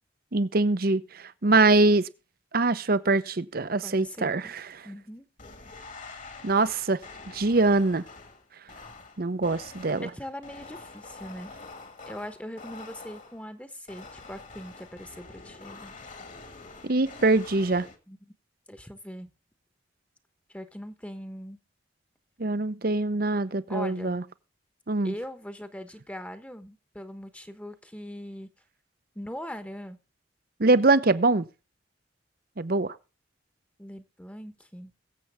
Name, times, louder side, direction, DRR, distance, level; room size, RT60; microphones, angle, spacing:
voice 1, 0.3-1.0 1.4-2.1 2.5-4.6 6.4-7.0 7.3-8.0 9.2-10.1 16.8-17.9 22.4-24.2 24.9-25.1 30.6-31.4 32.6-32.9, right 3 dB, 55° right, 0.8 m, -23 dB
voice 2, 3.8-4.5 4.8-5.3 10.0-11.5 12.1-15.9 18.1-18.3 18.7-19.3 20.5-21.6 23.7-24.2 25.0-28.5 29.1-30.0 30.8-30.9 33.8-34.9, equal, 10° left, 1.1 m, -41 dB
sound 1, 5.4-13.5 13.9-18.0, left 3 dB, 45° left, 1.9 m, -46 dB
22.0 x 7.8 x 3.5 m
head